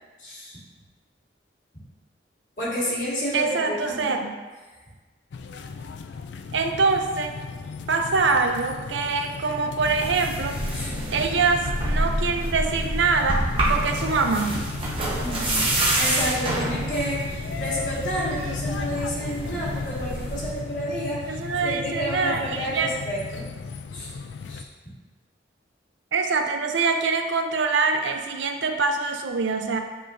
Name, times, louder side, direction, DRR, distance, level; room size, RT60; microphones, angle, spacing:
voice 1, 0.2-0.6 2.6-4.2 10.7-10.9 15.2-21.4 21.6-23.5 23.9-24.1 24.5-24.6, equal, 45° left, -9 dB, 1.8 m, -30 dB
voice 2, 3.3-4.3 6.5-7.4 7.9-10.6 11.1-14.6 21.3-22.9 26.1-29.8, right 4 dB, 80° right, 5 dB, 0.6 m, -24 dB
sound 1, 5.3-24.6, left 4 dB, 75° left, 0.4 m, -35 dB
sound 2, 9.8-20.5, right 1 dB, 30° right, 1.0 m, -28 dB
8.4 x 4.4 x 2.6 m, 1.3 s
head